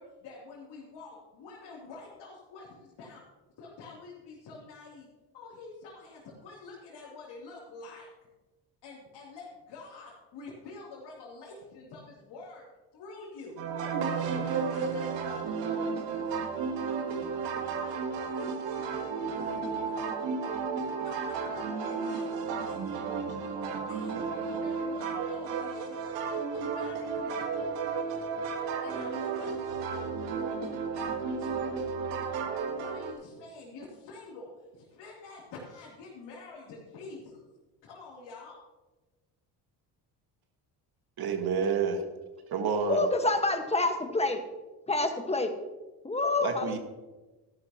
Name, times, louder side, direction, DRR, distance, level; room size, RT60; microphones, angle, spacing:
voice 1, 0.0-3.2 3.6-5.1 5.3-8.1 8.8-12.6 12.9-13.6 13.9-16.4 16.8-18.0 18.3-20.1 21.0-23.6 23.9-26.0 26.5-27.8 28.8-30.0 30.6-31.9 32.7-37.4 37.8-38.6, left 3 dB, 75° left, -6 dB, 3.2 m, -48 dB
sound 1, 13.6-33.1, right 5 dB, 80° right, 1.7 m, -33 dB
voice 2, 41.2-42.0 42.5-43.0 46.4-46.8, right 6 dB, 60° right, 5 dB, 1.8 m, -28 dB
voice 3, 42.9-44.4 44.9-45.5 46.0-46.8, left 2 dB, 15° left, 6 dB, 1.5 m, -27 dB
13.5 x 11.5 x 3.0 m, 1.2 s
supercardioid pair, 70°, 43 cm